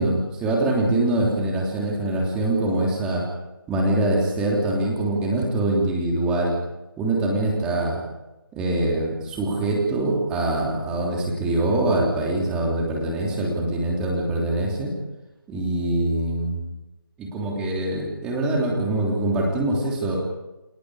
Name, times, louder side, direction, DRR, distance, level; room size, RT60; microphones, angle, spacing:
voice 1, 0.0-3.3 3.7-6.6 7.0-8.0 8.5-14.9 15.5-16.6 17.2-20.2, right 2 dB, 5° right, -2 dB, 3.2 m, -23 dB
29.5 x 20.5 x 5.0 m, 1.0 s
figure-of-eight pair, 165°, 12 cm